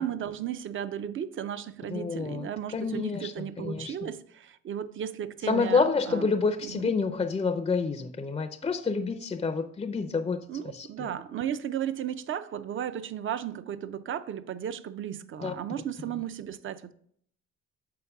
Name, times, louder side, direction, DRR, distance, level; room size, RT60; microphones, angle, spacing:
voice 1, 0.0-6.3 6.6-6.8 10.5-16.9, right 9 dB, 45° right, 0.5 m, -35 dB
voice 2, 1.9-4.1 5.4-11.1 15.4-15.5, left 4 dB, 20° left, 0.4 m, -29 dB
6.9 x 4.6 x 3.5 m
cardioid pair, 90°, 30 cm